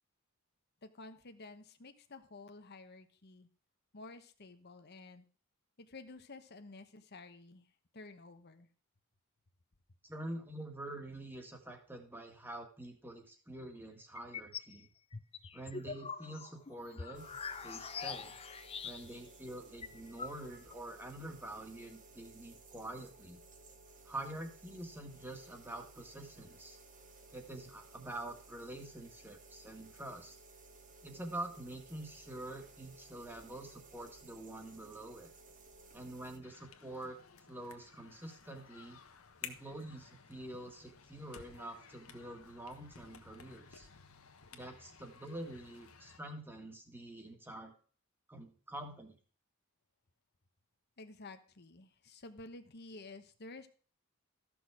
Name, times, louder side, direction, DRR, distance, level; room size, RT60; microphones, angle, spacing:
voice 1, 0.8-3.5 3.9-5.2 5.8-7.7 7.9-8.7 15.4-15.5 51.0-53.7, left 3 dB, 50° left, 7 dB, 1.1 m, -52 dB
voice 2, 10.0-14.9 15.5-17.2 17.6-18.3 18.8-23.4 24.0-26.8 27.3-30.4 31.0-35.3 35.9-37.2 37.5-39.0 39.4-43.9 44.5-47.7 48.3-49.2, right 1 dB, 10° right, 3 dB, 1.9 m, -46 dB
sound 1, 14.2-14.7 15.1-19.3 19.6-19.7 19.8-20.8, left 5 dB, 30° left, 0.6 m, -44 dB
sound 2, 17.1-36.4, right 3 dB, 40° right, 1.4 m, -58 dB
sound 3, 36.4-46.2, left 7 dB, 85° left, 1.2 m, -55 dB
14.0 x 6.3 x 4.9 m, 0.41 s
head